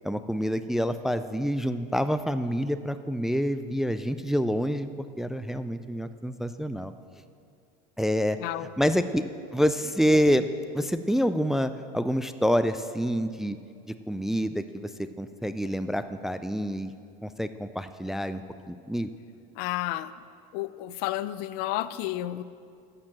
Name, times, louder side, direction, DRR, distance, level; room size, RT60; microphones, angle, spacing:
voice 1, 0.0-4.9 5.2-6.9 8.0-8.4 8.8-9.2 9.5-10.5 10.7-13.6 14.1-14.9 15.2-16.9 17.2-19.1, equal, ahead, 11 dB, 0.3 m, -27 dB
voice 2, 8.4-8.7 19.6-20.1 20.5-22.4, left 15 dB, 60° left, 16 dB, 0.5 m, -31 dB
11.5 x 6.7 x 7.4 m, 2.4 s
supercardioid pair, 115°, 18 cm